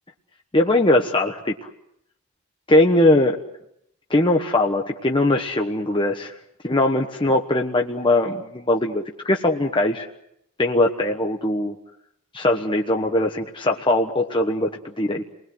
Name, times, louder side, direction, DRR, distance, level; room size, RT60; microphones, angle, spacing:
voice 1, 0.5-1.5 2.7-3.4 4.1-6.3 6.6-10.1 10.6-11.7 12.3-14.7 15.0-15.2, left 1 dB, 25° left, 2 dB, 1.2 m, -20 dB
29.5 x 20.5 x 7.9 m, 0.78 s
head